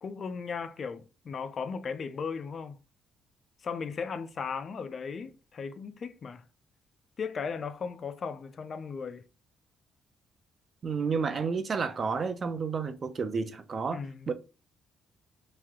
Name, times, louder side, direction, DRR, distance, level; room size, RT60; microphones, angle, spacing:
voice 1, 0.0-2.8 3.6-6.4 7.2-9.2 13.9-14.3, left 5 dB, 50° left, 0.5 m, -36 dB
voice 2, 10.8-14.0 14.3-14.4, right 5 dB, 45° right, 0.7 m, -30 dB
3.2 x 2.7 x 3.6 m
cardioid pair, 90°, 0 cm